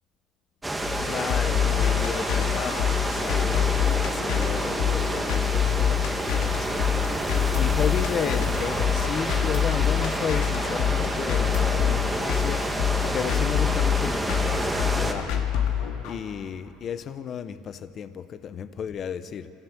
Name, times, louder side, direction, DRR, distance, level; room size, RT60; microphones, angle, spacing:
sound 1, 0.6-15.1, right 1 dB, 10° right, 2.0 m, -29 dB
sound 2, 0.8-16.2, left 9 dB, 70° left, 2.0 m, -26 dB
voice 1, 1.0-15.4 16.0-19.5, left 7 dB, 40° left, 13 dB, 0.8 m, -34 dB
25.5 x 15.0 x 7.4 m, 3.0 s
supercardioid pair, 105°, 0 cm